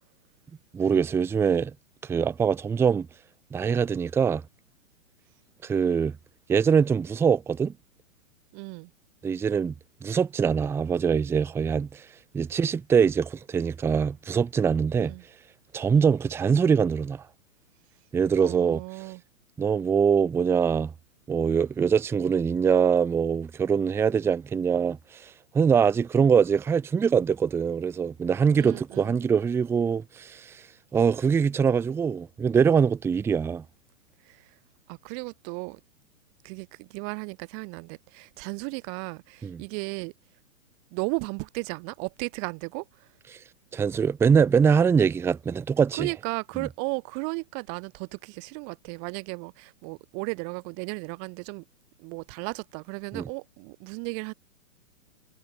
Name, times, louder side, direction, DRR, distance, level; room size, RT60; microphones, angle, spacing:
voice 1, 0.7-1.7 2.0-3.1 3.5-4.4 5.6-6.2 6.5-7.7 9.2-9.7 10.0-12.0 12.3-15.1 15.7-17.2 18.1-18.8 19.6-20.9 21.3-25.3 25.5-30.5 30.9-33.6 39.4-39.6 43.7-46.1 46.6-46.7 53.1-53.3, right 6 dB, 5° right, 0.6 m, -23 dB
voice 2, 8.5-8.9 15.0-15.2 15.9-16.1 18.4-19.2 28.6-29.1 34.3-34.5 34.9-35.8 36.4-40.1 40.9-43.1 46.0-51.6 52.0-54.3, right 40 dB or more, 35° right, 4.1 m, -35 dB
hypercardioid pair, 135°, 41 cm